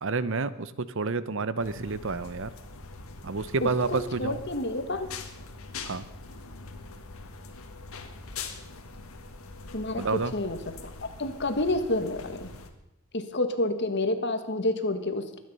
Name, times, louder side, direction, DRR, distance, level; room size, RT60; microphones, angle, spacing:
voice 1, 0.0-2.5 3.2-4.4 5.8-6.0 10.0-10.3, right 4 dB, 60° right, 16 dB, 0.7 m, -29 dB
sound 1, 1.6-12.7, left 4 dB, 70° left, 1.7 m, -43 dB
voice 2, 3.6-5.1 9.7-10.8 11.2-12.5 13.1-15.4, left 2 dB, 50° left, 8 dB, 1.4 m, -29 dB
22.5 x 9.6 x 5.5 m, 0.88 s
head